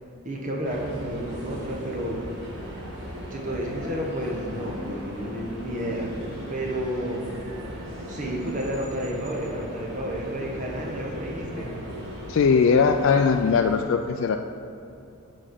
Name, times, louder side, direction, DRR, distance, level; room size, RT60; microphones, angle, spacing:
voice 1, 0.2-2.2 3.3-6.2 6.5-7.2 8.1-11.7, equal, 35° right, -1 dB, 1.1 m, -31 dB
sound 1, 0.6-13.8, equal, 55° right, 1.7 m, -37 dB
voice 2, 12.3-14.4, left 5 dB, 60° left, 5 dB, 0.3 m, -20 dB
7.4 x 4.9 x 5.9 m, 2.7 s
head